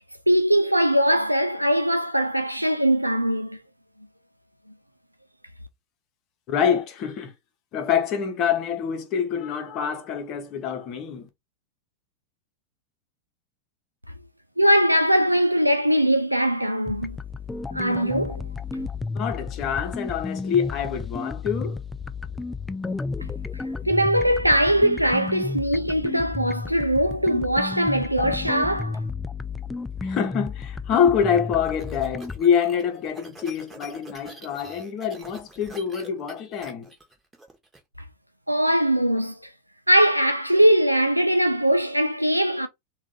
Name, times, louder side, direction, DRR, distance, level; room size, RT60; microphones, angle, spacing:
voice 1, 0.3-3.6 14.6-17.2 17.7-18.4 23.2-23.3 23.5-29.0 38.5-39.5 39.9-42.7, equal, 90° right, 0.4 m, -21 dB
voice 2, 6.5-7.3 7.7-11.3 19.1-21.8 30.0-36.9, left 7 dB, 35° left, 1.0 m, -25 dB
sound 1, 16.9-32.4, left 4 dB, 10° left, 0.3 m, -32 dB
sound 2, 31.3-37.8, right 2 dB, 10° right, 1.1 m, -46 dB
3.6 x 2.5 x 3.9 m
figure-of-eight pair, 90°, 0 cm